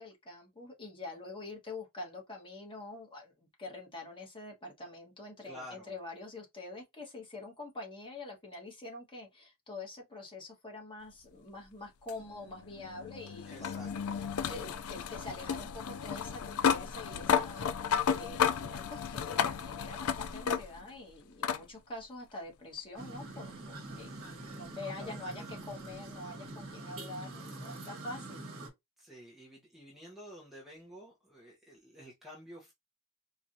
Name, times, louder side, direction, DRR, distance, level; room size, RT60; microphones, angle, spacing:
voice 1, 0.0-13.8 14.4-17.7 18.1-24.2 24.5-28.4, left 2 dB, 25° left, 1.4 m, -45 dB
voice 2, 5.4-5.9 13.5-14.2 24.9-25.7 29.0-32.7, equal, ahead, 0.9 m, -51 dB
sound 1, 12.1-21.0 21.4-21.6 22.9-23.0 25.9-26.0, left 7 dB, 65° left, 0.4 m, -33 dB
sound 2, 22.9-28.7, right 2 dB, 65° right, 1.5 m, -44 dB
4.6 x 2.5 x 2.7 m
head